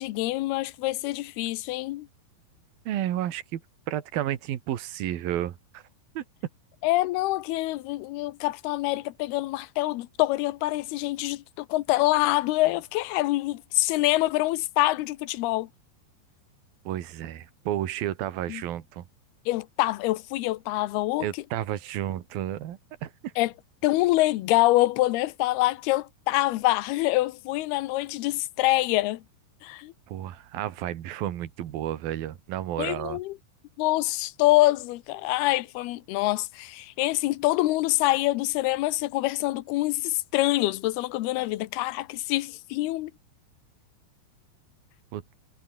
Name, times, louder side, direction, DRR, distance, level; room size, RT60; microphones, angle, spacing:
voice 1, 0.0-2.1 6.8-15.7 18.5-18.6 19.5-21.3 23.4-23.5 23.8-29.2 29.6-29.9 32.8-33.4 33.8-43.1, left 18 dB, 75° left, 2.7 m, -25 dB
voice 2, 2.9-3.6 3.9-5.8 6.2-6.3 16.9-19.1 21.2-23.3 30.1-33.2 45.1-45.2, right 12 dB, 65° right, 3.3 m, -32 dB
omnidirectional pair, 5.0 m